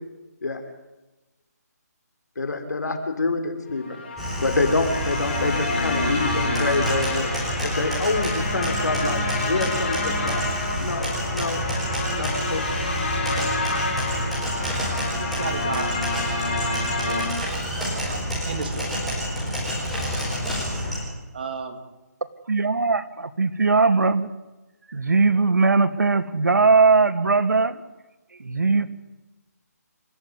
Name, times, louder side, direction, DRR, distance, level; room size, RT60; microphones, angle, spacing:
voice 1, 2.4-4.0 4.4-7.3 7.6-10.4 10.8-11.6 12.2-12.7, left 3 dB, 75° left, 6 dB, 5.8 m, -26 dB
sound 1, 3.8-17.3, left 2 dB, 35° left, 6.7 m, -28 dB
sound 2, 4.2-21.0, equal, ahead, 4.6 m, -29 dB
voice 2, 15.1-16.1 16.4-17.3 17.8-19.0 21.3-21.8, right 4 dB, 30° right, 5 dB, 3.2 m, -34 dB
voice 3, 22.5-24.3 24.9-27.8 28.4-28.9, right 4 dB, 90° right, 10 dB, 2.5 m, -19 dB
28.0 x 14.5 x 9.8 m, 1.1 s
hypercardioid pair, 175°, 9 cm